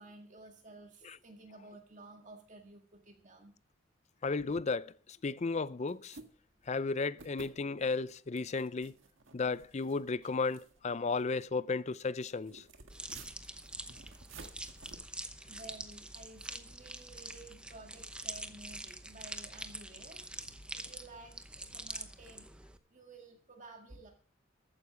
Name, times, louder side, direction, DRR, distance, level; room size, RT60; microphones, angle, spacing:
voice 1, 0.0-3.5 15.4-22.5 22.9-24.1, right 2 dB, 40° right, 1.8 m, -53 dB
voice 2, 4.2-4.9 5.2-6.2 6.7-8.9 9.3-12.6, left 4 dB, 35° left, 0.5 m, -34 dB
sound 1, 5.9-6.3 6.6-6.7 7.2-7.5 7.8-8.1 8.4-11.5 12.0-14.9, right 3 dB, 75° right, 1.6 m, -53 dB
sound 2, 12.9-22.8, right 1 dB, 5° right, 0.8 m, -45 dB
14.0 x 9.5 x 4.7 m
head